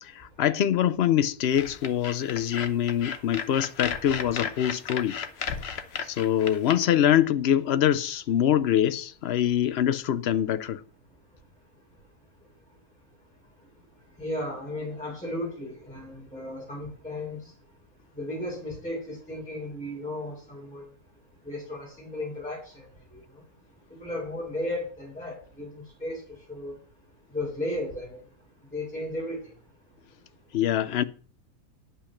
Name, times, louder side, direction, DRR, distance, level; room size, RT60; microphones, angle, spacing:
voice 1, 0.0-5.2 6.1-10.8 30.5-31.0, left 10 dB, 65° left, 0.6 m, -24 dB
sound 1, 1.5-6.7, left 6 dB, 50° left, 1.0 m, -34 dB
voice 2, 14.2-17.5 18.1-20.9 21.4-22.7 23.1-23.2 23.9-26.7 27.3-28.2 28.7-29.4, left 1 dB, 5° left, 3.0 m, -35 dB
10.0 x 5.6 x 7.1 m
omnidirectional pair, 1.6 m